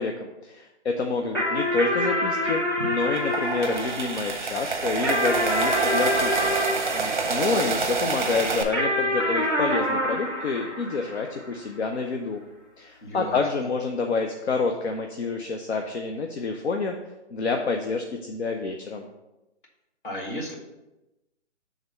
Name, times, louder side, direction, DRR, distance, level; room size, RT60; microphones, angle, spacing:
voice 1, 0.0-6.5 7.3-12.4 12.8-16.9 17.3-19.0, left 4 dB, 65° left, 3 dB, 0.6 m, -28 dB
sound 1, 1.3-8.0 8.7-11.5, left 1 dB, 20° left, 0.7 m, -27 dB
sound 2, 3.0-8.6, right 4 dB, 45° right, 0.8 m, -27 dB
voice 2, 6.9-7.5 13.0-13.4 20.0-20.6, equal, 45° left, 0 dB, 1.4 m, -35 dB
5.5 x 3.6 x 5.3 m, 0.99 s
hypercardioid pair, 180°, 35 cm